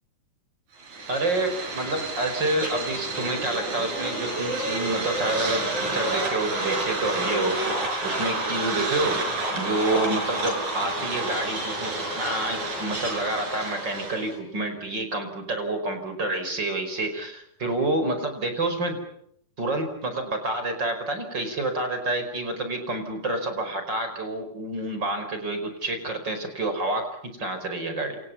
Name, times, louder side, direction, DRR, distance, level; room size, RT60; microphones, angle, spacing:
sound 1, 0.8-14.4, right 2 dB, 65° right, 7.5 m, -29 dB
voice 1, 1.1-7.7 8.0-9.2 9.5-19.0 19.6-28.2, right 2 dB, 30° right, 7 dB, 5.5 m, -28 dB
29.5 x 28.0 x 5.7 m, 0.69 s
omnidirectional pair, 3.7 m